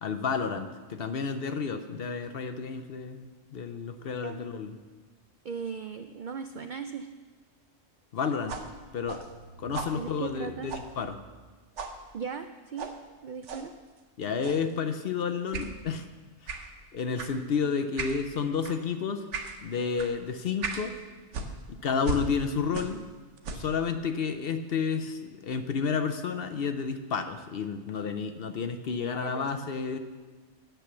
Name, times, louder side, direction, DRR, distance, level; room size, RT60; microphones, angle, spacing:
voice 1, 0.0-3.3 3.5-4.8 8.1-8.6 8.9-9.2 9.6-11.2 14.2-16.1 16.4-16.6 16.9-19.2 19.6-20.9 21.7-23.0 23.5-30.0, left 5 dB, 55° left, 8 dB, 0.7 m, -31 dB
voice 2, 5.4-7.1 9.9-10.7 12.1-12.9 13.2-13.7 29.0-29.5, right 6 dB, 80° right, 8 dB, 0.4 m, -38 dB
sound 1, 8.5-11.5 11.8-12.0 12.8-13.0 13.4-13.7 14.4-14.7 15.5-15.7 16.5-16.7 17.2-17.4 18.0-18.2 18.6-18.8 19.3-19.6 20.0-20.1 20.6-20.9 21.3-23.1 23.4-23.8, right 4 dB, 65° right, 1.2 m, -37 dB
9.1 x 7.9 x 6.9 m, 1.3 s
omnidirectional pair, 1.4 m